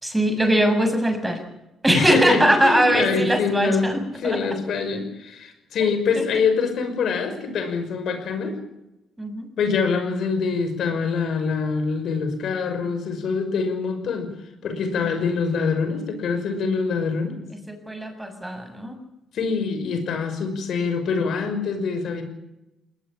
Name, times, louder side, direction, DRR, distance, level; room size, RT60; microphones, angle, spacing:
voice 1, 0.0-1.4 1.8-4.4 6.1-6.3 9.2-9.5 17.7-19.0, right 1 dB, 10° right, 7 dB, 7.1 m, -21 dB
voice 2, 1.9-8.6 9.6-14.3 14.6-17.4 19.3-22.2, left 5 dB, 70° left, 8 dB, 5.8 m, -25 dB
21.0 x 20.5 x 8.8 m, 0.92 s
cardioid pair, 80°, 0 cm